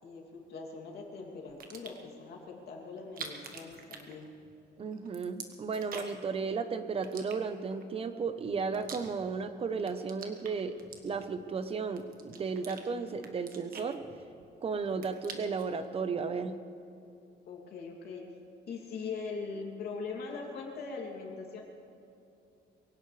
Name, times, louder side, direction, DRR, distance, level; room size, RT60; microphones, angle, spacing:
voice 1, 0.0-4.3 17.5-18.2 18.7-21.6, left 4 dB, 60° left, -1 dB, 2.8 m, -41 dB
sound 1, 1.5-2.1 3.0-4.6 4.9-6.3 7.0-7.8 8.4-9.5 9.8-11.5 12.0-12.8 13.2-14.5 14.8-15.7, right 6 dB, 55° right, 1.5 m, -46 dB
voice 2, 4.8-10.8 11.0-14.0 14.6-16.6, right 5 dB, 30° right, 10 dB, 0.8 m, -34 dB
23.0 x 17.5 x 3.3 m, 2.7 s
cardioid pair, 170°, 18 cm